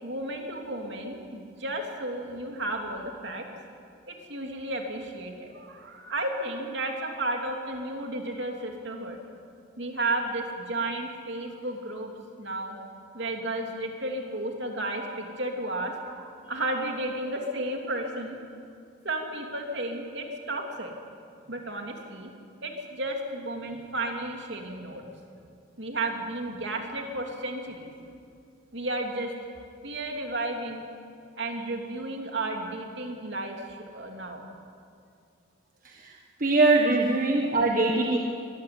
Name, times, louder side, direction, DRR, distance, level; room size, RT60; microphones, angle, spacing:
voice 1, 0.0-3.4 4.1-9.2 9.8-12.1 12.4-12.8 13.1-18.4 19.0-20.9 21.5-22.3 22.6-25.0 25.8-27.9 28.7-29.3 29.8-30.8 31.4-34.5 36.9-37.0, right 2 dB, 60° right, 2 dB, 3.0 m, -33 dB
voice 2, 36.4-38.2, right 2 dB, 40° right, 0 dB, 1.4 m, -22 dB
23.5 x 14.5 x 9.7 m, 2.4 s
head